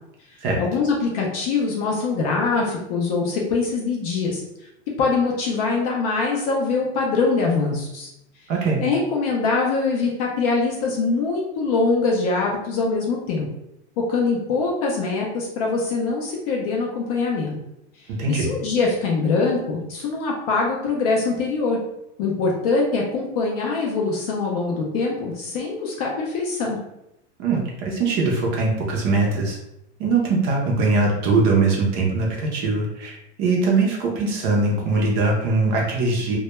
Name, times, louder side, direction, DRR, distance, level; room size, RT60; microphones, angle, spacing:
voice 1, 0.6-4.4 5.0-8.1 8.8-13.5 14.1-17.6 18.3-21.8 22.2-26.8, left 4 dB, 35° left, -2 dB, 0.4 m, -23 dB
voice 2, 8.5-8.8 18.1-18.5 27.4-29.6 30.0-36.4, right 3 dB, 30° right, -1 dB, 0.5 m, -21 dB
2.2 x 2.1 x 2.9 m, 0.84 s
supercardioid pair, 155°, 34 cm